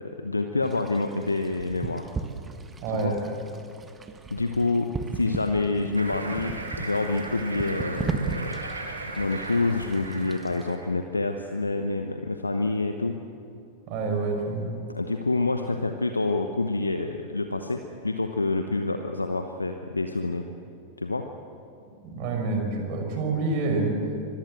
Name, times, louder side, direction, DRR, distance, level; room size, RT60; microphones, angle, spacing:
voice 1, 0.0-2.1 2.9-3.2 4.3-8.6 9.2-13.2 14.9-20.4 21.0-21.3, left 3 dB, 80° left, 6 dB, 1.1 m, -27 dB
sound 1, 0.6-10.8, right 4 dB, 15° right, 1.7 m, -37 dB
voice 2, 2.8-3.2 13.9-14.6 22.0-24.0, right 3 dB, 45° right, 3 dB, 5.7 m, -27 dB
sound 2, 5.9-11.0, right 2 dB, 80° right, 2.7 m, -37 dB
25.0 x 21.0 x 8.0 m, 2.7 s
figure-of-eight pair, 90°, 0 cm